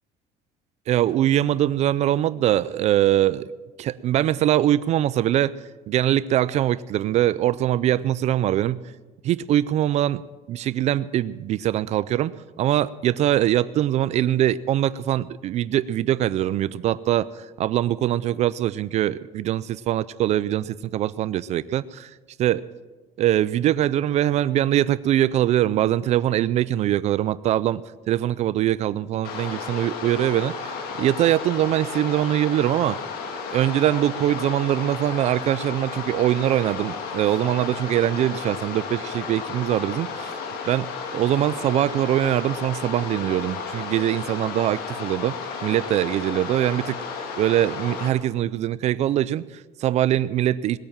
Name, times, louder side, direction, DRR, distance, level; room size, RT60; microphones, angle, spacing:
voice 1, 0.9-3.5 3.8-5.5 5.9-8.9 9.2-10.2 10.5-22.6 23.2-27.8 28.1-33.0 33.5-40.3 40.7-45.4 45.6-50.8, right 12 dB, 45° right, 17 dB, 0.4 m, -23 dB
sound 1, 29.2-48.1, left 5 dB, 70° left, 2.1 m, -33 dB
20.0 x 8.9 x 7.3 m, 1.3 s
cardioid pair, 175°, 16 cm